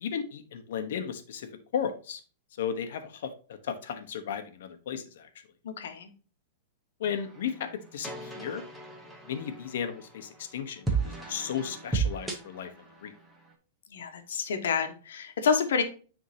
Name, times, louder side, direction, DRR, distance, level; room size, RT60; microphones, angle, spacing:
voice 1, 0.0-2.2 2.6-3.3 3.6-5.3 7.0-8.6 9.3-12.7 13.0-13.1, left 8 dB, 65° left, 8 dB, 1.0 m, -34 dB
voice 2, 5.6-6.1 13.9-15.8, left 6 dB, 85° left, 6 dB, 1.2 m, -28 dB
sound 1, 7.0-13.5, right 4 dB, 5° right, 0.9 m, -35 dB
9.5 x 3.6 x 2.8 m, 0.37 s
supercardioid pair, 170°, 0 cm